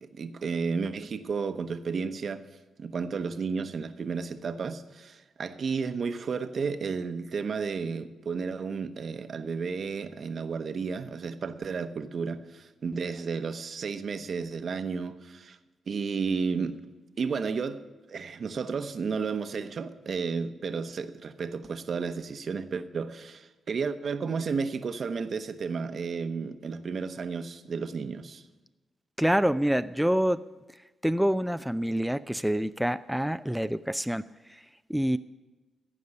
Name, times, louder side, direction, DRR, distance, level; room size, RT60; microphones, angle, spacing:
voice 1, 0.1-2.4 2.8-15.6 15.9-16.8 17.2-17.8 18.1-28.4, right 5 dB, 60° right, 0.8 m, -32 dB
voice 2, 29.2-35.2, equal, 5° right, 0.3 m, -27 dB
15.0 x 5.4 x 9.7 m
cardioid pair, 65°, 0 cm